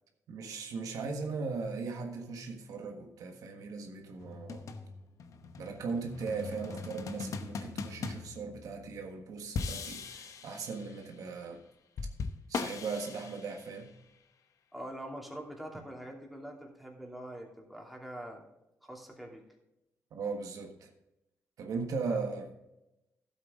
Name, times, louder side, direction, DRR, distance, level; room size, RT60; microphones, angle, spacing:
voice 1, 0.3-4.6 5.6-11.6 12.5-13.9 20.1-20.9 21.6-22.5, right 4 dB, 80° right, 3 dB, 1.5 m, -38 dB
sound 1, 4.2-9.0 9.5-11.1 12.0-13.9, left 4 dB, 70° left, 0.9 m, -40 dB
voice 2, 14.7-18.4 18.8-19.4 22.1-22.2, right 1 dB, ahead, -1 dB, 2.8 m, -44 dB
12.0 x 8.1 x 3.7 m, 0.92 s
cardioid pair, 85°, 6 cm